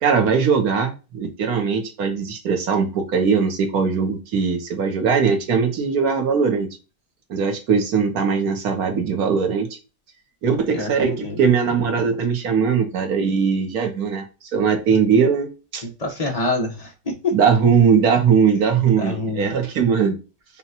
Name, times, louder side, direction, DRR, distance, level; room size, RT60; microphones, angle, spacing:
voice 1, 0.0-6.7 7.3-9.8 10.4-14.2 14.5-15.8 17.3-20.2, right 6 dB, 60° right, 5 dB, 1.3 m, -20 dB
voice 2, 10.7-11.4 15.8-17.3 19.0-19.5, left 2 dB, 30° left, 1 dB, 0.7 m, -26 dB
5.6 x 2.4 x 2.7 m, 0.31 s
omnidirectional pair, 1.9 m